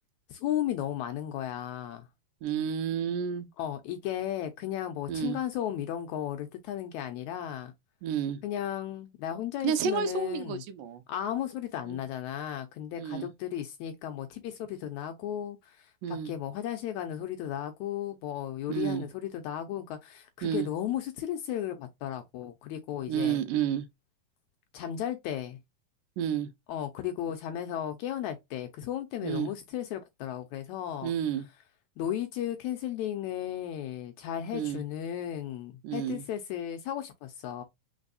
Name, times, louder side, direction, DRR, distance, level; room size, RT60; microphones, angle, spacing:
voice 1, 0.3-2.1 3.6-7.7 8.4-10.6 11.1-23.4 24.7-25.6 26.7-31.1 32.0-37.6, left 11 dB, 80° left, 1.8 m, -35 dB
voice 2, 2.4-3.5 5.1-5.4 8.0-8.4 9.6-11.0 11.9-12.0 13.0-13.3 16.0-16.3 18.7-19.1 20.4-20.7 23.1-23.9 26.2-26.5 29.2-29.5 31.0-31.5 34.5-34.8 35.8-36.2, right 8 dB, 85° right, 2.3 m, -30 dB
4.4 x 4.1 x 2.5 m
omnidirectional pair, 3.8 m